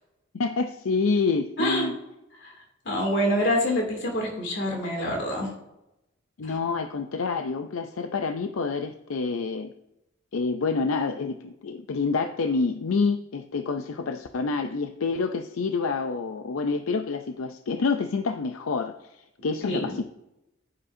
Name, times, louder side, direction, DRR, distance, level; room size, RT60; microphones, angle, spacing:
voice 1, 0.3-2.0 6.4-9.7 10.3-20.0, left 4 dB, 85° left, 7 dB, 0.5 m, -27 dB
voice 2, 1.6-1.9 2.4-5.5 6.4-6.5 19.6-20.0, equal, 60° left, 0 dB, 2.6 m, -27 dB
9.9 x 9.6 x 2.7 m, 0.90 s
head